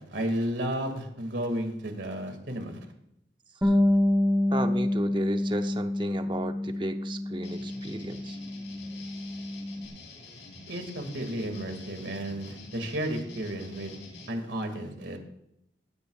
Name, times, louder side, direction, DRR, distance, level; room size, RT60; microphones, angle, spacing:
voice 1, 0.0-2.9 10.7-14.0 14.3-15.2, right 1 dB, 90° right, 6 dB, 2.2 m, -33 dB
Bass guitar, 3.6-9.9, left 1 dB, 10° right, 1.0 m, -27 dB
voice 2, 4.5-8.4, right 1 dB, 25° right, 7 dB, 0.7 m, -34 dB
sound 1, 7.4-14.3, left 2 dB, 90° left, 3.8 m, -47 dB
16.5 x 12.5 x 2.4 m, 0.79 s
head